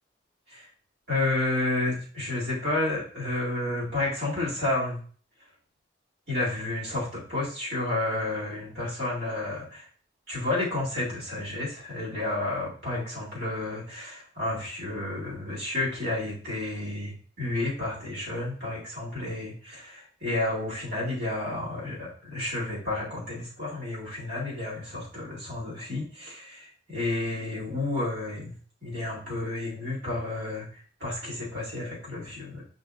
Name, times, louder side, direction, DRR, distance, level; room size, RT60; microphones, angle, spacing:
voice 1, 1.1-5.0 6.3-9.9 10.3-28.5 28.8-30.7 31.0-32.6, left 2 dB, 55° right, -6 dB, 2.2 m, -31 dB
5.3 x 3.6 x 2.5 m, 0.44 s
head